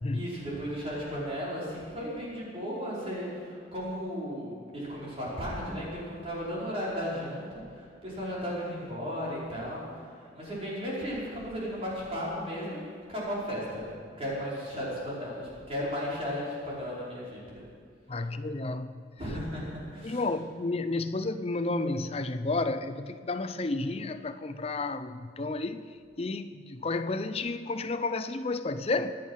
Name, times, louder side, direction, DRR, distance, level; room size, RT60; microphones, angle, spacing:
voice 1, 0.1-7.5 7.7-9.9 10.3-17.6 19.2-19.6 19.9-20.2, equal, 30° right, 5.1 m, -35 dB
voice 2, 18.1-18.9 20.0-25.9 26.2-29.1, left 3 dB, 30° left, 0.6 m, -31 dB
25.0 x 9.2 x 5.7 m
head